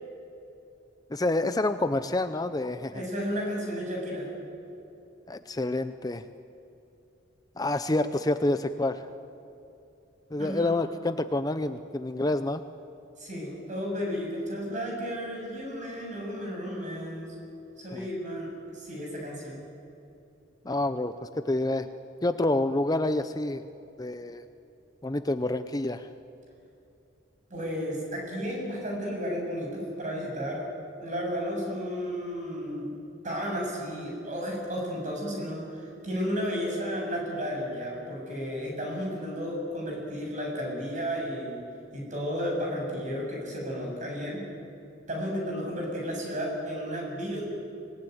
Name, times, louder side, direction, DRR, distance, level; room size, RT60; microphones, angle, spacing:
voice 1, 1.1-3.0 5.3-6.2 7.6-9.0 10.3-12.6 17.9-18.1 20.6-21.9 22.2-23.6 24.0-24.4 25.0-26.1, left 2 dB, 20° left, 10 dB, 0.6 m, -28 dB
voice 2, 2.9-4.3 10.4-10.7 13.2-17.3 17.8-19.6 27.5-30.7 31.0-32.9 33.2-41.6 41.9-44.4 45.1-47.4, equal, 40° right, -1 dB, 7.4 m, -33 dB
25.5 x 19.0 x 9.4 m, 2.8 s
head